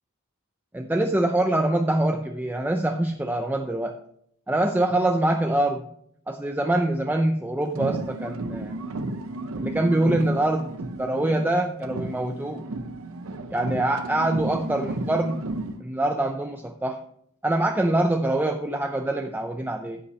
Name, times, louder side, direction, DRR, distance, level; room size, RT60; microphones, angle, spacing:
voice 1, 0.7-3.9 4.5-5.9 6.3-8.7 9.6-12.7 13.5-15.5 15.8-17.0 17.4-20.0, right 1 dB, 10° right, 5 dB, 0.5 m, -24 dB
sound 1, 7.7-11.5 11.8-15.8, right 2 dB, 70° right, 0.7 m, -33 dB
15.5 x 5.6 x 3.2 m, 0.68 s
head